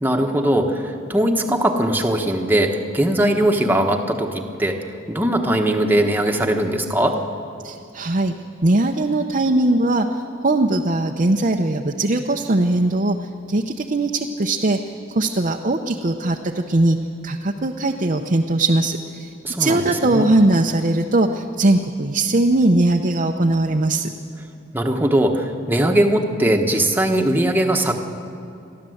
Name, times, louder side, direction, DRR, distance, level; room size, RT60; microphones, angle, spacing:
voice 1, 0.0-4.8 5.1-7.2 19.4-20.3 24.7-27.9, right 1 dB, 10° right, 3 dB, 1.2 m, -20 dB
voice 2, 7.6-8.3 8.6-14.8 15.1-17.0 17.2-19.3 19.6-24.1, right 2 dB, 40° right, 2 dB, 0.7 m, -20 dB
29.5 x 12.0 x 7.8 m, 2.6 s
head